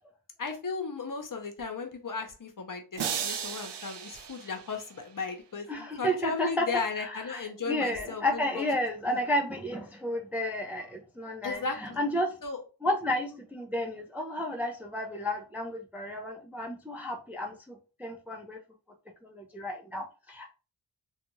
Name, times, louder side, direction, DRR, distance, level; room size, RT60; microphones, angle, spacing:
voice 1, 0.4-8.7 9.1-9.2 11.4-12.0 12.4-12.6, left 4 dB, 45° left, 5 dB, 0.7 m, -36 dB
sound 1, 3.0-5.2, right 8 dB, 65° right, 0.5 m, -36 dB
voice 2, 5.7-6.7 7.0-12.3 12.8-18.6 19.2-20.5, left 1 dB, 5° right, 3 dB, 0.4 m, -32 dB
2.4 x 2.3 x 2.9 m, 0.34 s
cardioid pair, 45°, 46 cm